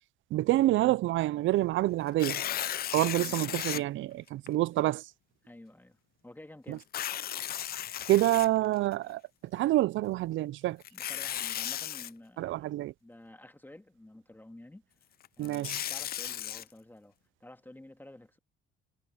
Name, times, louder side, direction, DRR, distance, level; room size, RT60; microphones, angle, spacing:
voice 1, 0.3-2.4 2.9-5.1 6.7-6.8 8.1-9.2 9.5-10.8 12.4-12.9 15.4-15.8, right 16 dB, 75° right, 0.4 m, -27 dB
Tearing, 2.1-3.8 4.5-4.6 6.8-8.9 10.8-12.1 15.2-16.6, left 11 dB, 50° left, 0.4 m, -35 dB
voice 2, 3.1-3.6 5.4-6.9 10.9-14.8 15.4-17.1 17.4-18.4, left 1 dB, 10° left, 1.9 m, -51 dB
cardioid pair, 90°, 20 cm